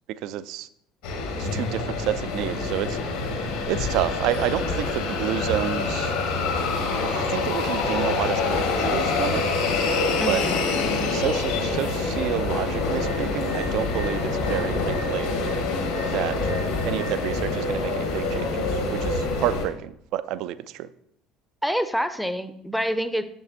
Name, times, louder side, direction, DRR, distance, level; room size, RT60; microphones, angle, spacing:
voice 1, 0.1-0.7 1.4-3.0 3.7-6.2 7.0-9.5 10.3-10.4 11.1-15.3 16.1-16.4 16.9-20.9, right 12 dB, 55° right, 15 dB, 0.3 m, -29 dB
sound 1, 1.0-19.6, left 3 dB, 65° left, 1.5 m, -26 dB
sound 2, 1.5-10.6, left 3 dB, 90° left, 1.4 m, -38 dB
voice 2, 10.2-10.6 21.6-23.2, equal, ahead, 11 dB, 0.5 m, -26 dB
8.0 x 7.0 x 2.7 m, 0.71 s
figure-of-eight pair, 60°, 0 cm